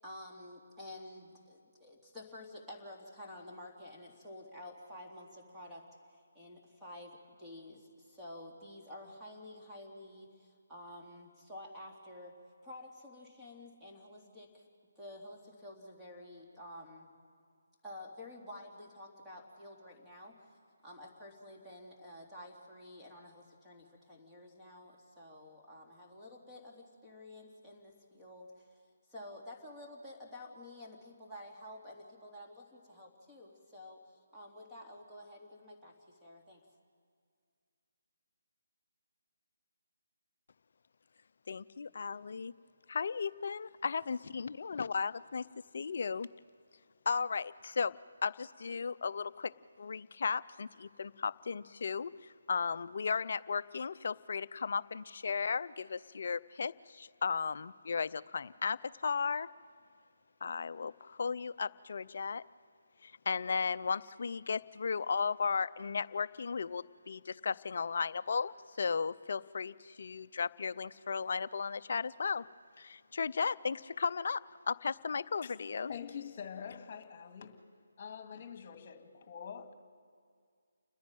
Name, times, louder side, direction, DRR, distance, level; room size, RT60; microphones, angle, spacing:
voice 1, 0.0-5.8 6.1-12.4 12.6-14.6 14.9-17.1 17.8-20.4 20.8-28.8 29.1-36.6, left 1 dB, 5° right, -4 dB, 3.3 m, -50 dB
voice 2, 41.5-42.5 42.9-45.5 45.7-46.3 47.1-48.0 48.2-49.5 49.8-59.5 60.4-62.4 63.0-72.5 72.8-75.9, left 5 dB, 55° left, 15 dB, 0.5 m, -35 dB
voice 3, 75.9-77.6 78.0-79.7, left 7 dB, 40° left, 6 dB, 2.1 m, -45 dB
29.5 x 10.5 x 9.2 m, 2.1 s
figure-of-eight pair, 155°, 0 cm